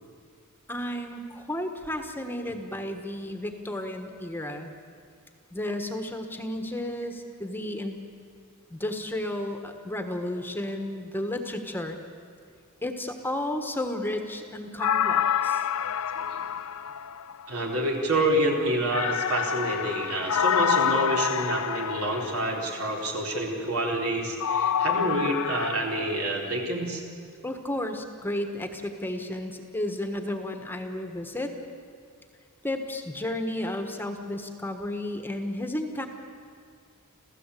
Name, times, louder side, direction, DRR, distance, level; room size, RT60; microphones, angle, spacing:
voice 1, 0.7-4.7 5.5-8.0 8.7-12.0 12.8-15.7 27.4-31.5 32.6-36.1, left 1 dB, 10° left, 5 dB, 1.4 m, -32 dB
sound 1, 14.8-17.6 18.9-22.7 24.4-25.8, left 8 dB, 75° left, 0.6 m, -27 dB
voice 2, 17.5-27.0, right 1 dB, 70° right, 0 dB, 4.1 m, -27 dB
27.5 x 15.5 x 8.4 m, 2.3 s
head